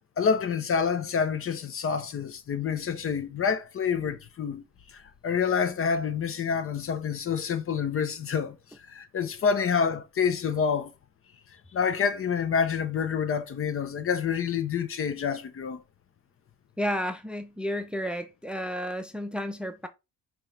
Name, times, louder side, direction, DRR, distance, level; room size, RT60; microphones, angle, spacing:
voice 1, 0.2-4.6 4.9-8.6 8.9-10.9 11.7-15.8, left 6 dB, 45° left, 0.7 m, -27 dB
voice 2, 16.8-19.9, equal, 5° right, 0.5 m, -32 dB
5.3 x 3.0 x 3.2 m
cardioid pair, 90°, 30 cm